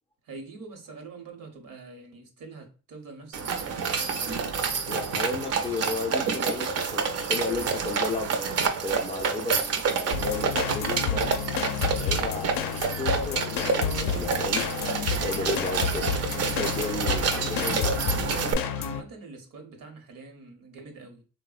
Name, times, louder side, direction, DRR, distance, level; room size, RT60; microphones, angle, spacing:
voice 1, 0.2-4.9 17.1-18.0 18.8-21.2, right 3 dB, 75° right, 0.8 m, -45 dB
sound 1, 3.3-18.5, right 5 dB, 50° right, 0.4 m, -28 dB
voice 2, 4.9-8.4 8.8-11.3 12.0-14.7 15.2-16.1 16.5-18.0, left 3 dB, 20° left, 0.3 m, -34 dB
sound 2, 10.1-19.0, left 7 dB, 80° left, 0.5 m, -30 dB
3.3 x 2.0 x 2.3 m
cardioid pair, 115°, 34 cm